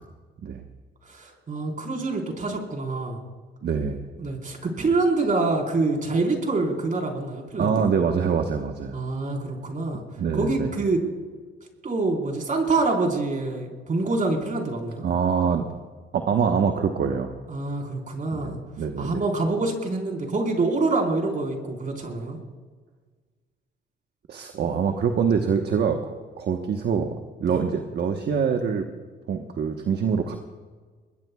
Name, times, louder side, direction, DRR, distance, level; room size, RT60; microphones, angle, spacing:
voice 1, 1.0-3.2 4.2-7.8 8.9-10.0 10.3-11.0 11.8-15.0 17.5-18.6 19.0-22.4 27.5-27.6, right 3 dB, 40° right, 1 dB, 4.4 m, -26 dB
voice 2, 3.6-4.1 7.6-9.0 10.2-10.7 15.0-15.7 16.1-17.3 18.3-19.2 24.3-26.0 26.4-27.1 27.4-28.9 29.3-30.4, right 6 dB, 60° right, 4 dB, 1.2 m, -24 dB
23.5 x 21.0 x 2.4 m, 1.5 s
cardioid pair, 90°, 20 cm